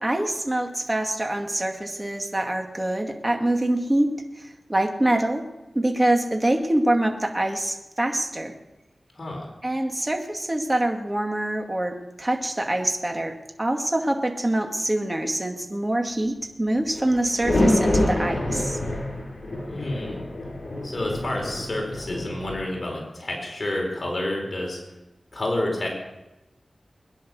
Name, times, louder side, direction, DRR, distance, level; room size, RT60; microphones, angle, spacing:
voice 1, 0.0-4.1 4.4-5.4 5.7-8.5 9.6-18.8, right 1 dB, 25° right, 3 dB, 2.3 m, -25 dB
voice 2, 9.2-9.5 19.7-20.2 20.8-24.8 25.3-25.9, left 1 dB, 50° left, 0 dB, 4.8 m, -29 dB
sound 1, 16.9-22.6, left 1 dB, 70° left, 7.3 m, -26 dB
21.5 x 10.5 x 6.3 m, 0.97 s
wide cardioid pair, 70°, 0 cm